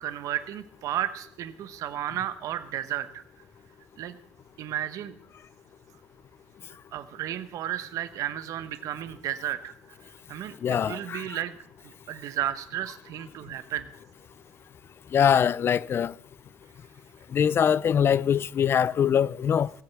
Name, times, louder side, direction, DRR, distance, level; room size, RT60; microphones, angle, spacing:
voice 1, 0.0-3.2 4.0-4.1 4.6-5.2 6.9-9.7 10.3-10.5 10.8-11.6 11.8-13.9, right 11 dB, 60° right, 1.0 m, -33 dB
voice 2, 10.6-11.2 15.1-16.1 17.3-19.7, left 8 dB, 40° left, 0.4 m, -23 dB
18.0 x 7.8 x 5.9 m
cardioid pair, 110°, 6 cm